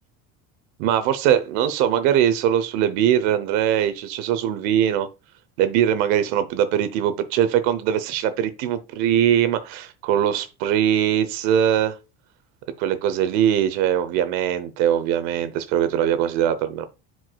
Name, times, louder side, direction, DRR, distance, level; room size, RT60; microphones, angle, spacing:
voice 1, 0.8-5.1 5.6-12.0 12.8-16.9, right 10 dB, 70° right, 0.8 m, -21 dB
10.0 x 4.8 x 2.3 m
cardioid pair, 155°, 29 cm